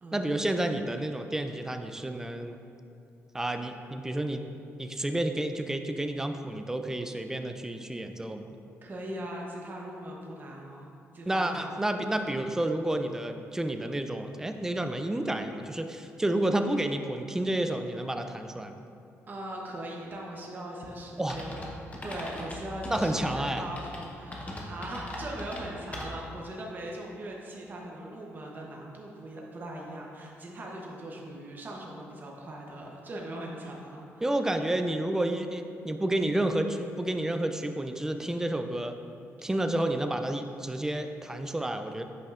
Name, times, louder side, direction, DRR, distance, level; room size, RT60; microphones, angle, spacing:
voice 1, 0.1-2.6 3.3-8.5 11.3-18.8 21.2-21.4 22.9-23.6 34.2-39.0 39.4-42.0, right 1 dB, 10° right, 7 dB, 0.4 m, -30 dB
voice 2, 8.8-11.7 12.1-12.3 19.3-21.6 22.0-34.3, right 1 dB, 35° right, -2 dB, 0.9 m, -40 dB
sound 1, 21.3-26.4, left 1 dB, 30° left, 0.9 m, -40 dB
8.2 x 5.2 x 2.5 m, 2.6 s
cardioid pair, 100°, 5 cm